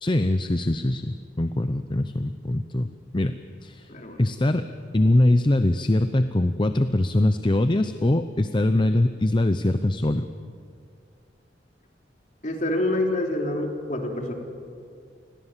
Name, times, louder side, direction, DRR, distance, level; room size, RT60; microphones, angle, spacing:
voice 1, 0.0-3.9 4.2-4.7 4.9-10.3, left 1 dB, 25° left, 10 dB, 0.7 m, -22 dB
voice 2, 3.9-4.2 12.4-14.3, left 1 dB, 45° left, 2 dB, 3.3 m, -26 dB
29.0 x 21.0 x 7.4 m, 2.3 s
head